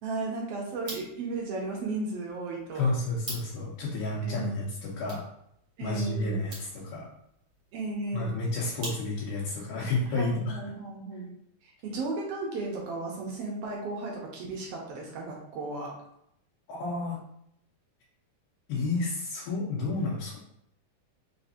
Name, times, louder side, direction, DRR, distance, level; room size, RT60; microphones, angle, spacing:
voice 1, 0.0-2.9 4.2-4.6 5.8-6.4 7.7-8.3 10.1-11.3 11.8-15.9, right 3 dB, 70° right, -2 dB, 1.5 m, -35 dB
sound 1, 0.7-9.4, right 2 dB, 45° right, 1.8 m, -47 dB
voice 2, 2.7-5.2 5.8-7.1 8.1-10.6 16.7-17.2 18.7-20.4, left 2 dB, 80° left, -6 dB, 2.5 m, -31 dB
5.0 x 3.7 x 2.6 m, 0.74 s
omnidirectional pair, 3.6 m